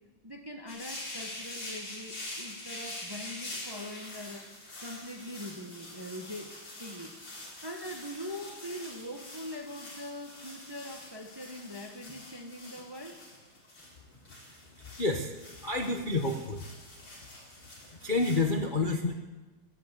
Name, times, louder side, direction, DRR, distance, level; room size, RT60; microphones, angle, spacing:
voice 1, 0.2-4.5 4.8-6.5 6.8-7.2 7.6-13.2, left 1 dB, 20° right, 3 dB, 0.7 m, -42 dB
sound 1, 0.7-18.5, left 1 dB, 60° left, 5.6 m, -45 dB
voice 2, 14.7-15.3 15.6-16.7 17.9-19.1, left 3 dB, 40° left, 3 dB, 0.7 m, -29 dB
14.0 x 11.5 x 8.2 m, 1.2 s
omnidirectional pair, 2.3 m